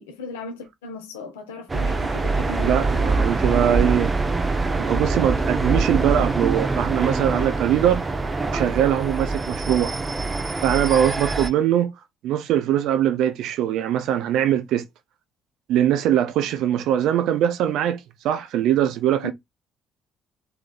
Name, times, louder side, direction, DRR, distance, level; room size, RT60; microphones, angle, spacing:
voice 1, 0.0-3.1 3.4-3.5 19.2-19.3, left 3 dB, 80° left, 1.1 m, -37 dB
sound 1, 1.7-11.5, right 3 dB, 25° right, 0.8 m, -24 dB
voice 2, 2.6-4.1 4.8-8.0 8.5-9.9 10.6-11.9 12.2-14.8 15.7-19.3, right 11 dB, 65° right, 0.5 m, -22 dB
3.5 x 3.4 x 2.3 m
figure-of-eight pair, 45°, 0 cm